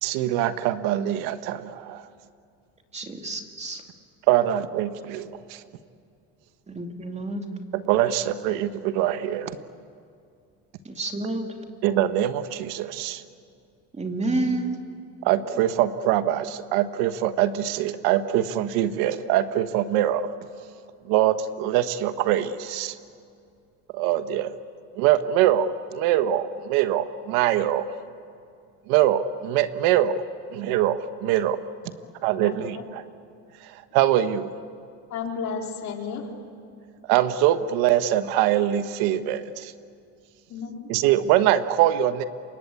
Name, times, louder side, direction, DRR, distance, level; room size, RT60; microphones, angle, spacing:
voice 1, 0.0-2.0 4.3-5.6 7.7-9.6 11.8-13.2 15.2-20.3 21.1-23.0 23.9-24.6 25.0-27.9 28.9-30.2 30.5-31.6 32.2-33.0 33.6-34.5 37.1-39.7 40.9-42.2, right 12 dB, 80° right, 11 dB, 1.3 m, -23 dB
voice 2, 2.9-3.8 6.7-7.4 10.8-11.5 14.0-14.8, right 2 dB, 20° right, 4 dB, 2.7 m, -29 dB
voice 3, 32.4-32.8 35.1-36.2 40.5-40.9, left 6 dB, 50° left, 1 dB, 4.2 m, -33 dB
28.0 x 24.5 x 8.5 m, 2.4 s
cardioid pair, 120°, 35 cm